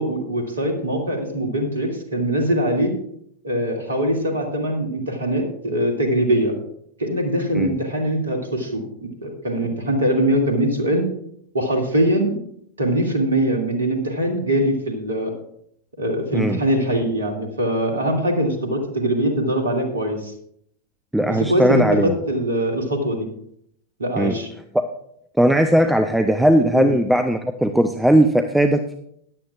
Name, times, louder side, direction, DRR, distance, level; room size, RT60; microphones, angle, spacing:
voice 1, 0.0-2.9 3.4-6.5 7.0-11.0 11.5-12.4 12.8-15.3 16.0-20.3 21.2-23.3 24.0-24.5 26.7-26.9, right 1 dB, 70° right, 3 dB, 2.3 m, -22 dB
voice 2, 21.1-22.2 24.2-24.4 24.7-24.8 25.4-29.0, right 1 dB, 5° right, 7 dB, 0.6 m, -18 dB
16.0 x 10.5 x 2.4 m, 0.72 s
figure-of-eight pair, 90°, 0 cm